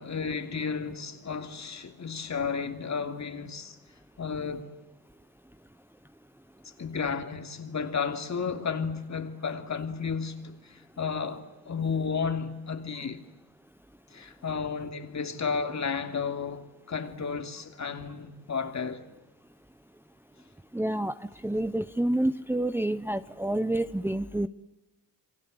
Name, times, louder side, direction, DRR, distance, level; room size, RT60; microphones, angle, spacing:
voice 1, 0.0-3.8 4.2-4.7 6.8-13.2 14.1-19.1, left 5 dB, 45° left, 3.1 m, -33 dB
voice 2, 20.7-24.5, right 1 dB, 5° right, 1.0 m, -28 dB
28.5 x 24.0 x 8.0 m
cardioid pair, 75°, 38 cm